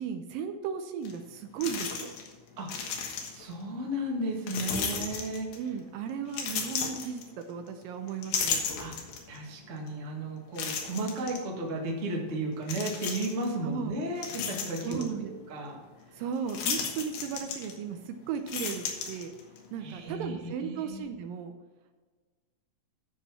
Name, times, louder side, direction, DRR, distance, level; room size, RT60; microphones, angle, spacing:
voice 1, 0.0-2.1 5.6-7.2 7.5-8.7 13.6-14.0 14.8-15.3 16.2-19.3 19.7-21.5, right 7 dB, 80° right, 7 dB, 2.3 m, -35 dB
sound 1, 1.1-1.2 1.6-2.3 2.6-3.5 4.5-5.7 6.3-7.7 8.1-9.4 9.9-10.0 10.6-11.4 12.6-13.5 13.9-15.1 16.5-18.0 18.3-19.6, left 6 dB, 80° left, 3.2 m, -34 dB
voice 2, 3.3-5.5 8.8-8.9 9.3-15.8 19.8-21.0, right 1 dB, 35° right, -1 dB, 1.2 m, -34 dB
13.0 x 4.4 x 5.7 m, 1.4 s
omnidirectional pair, 4.2 m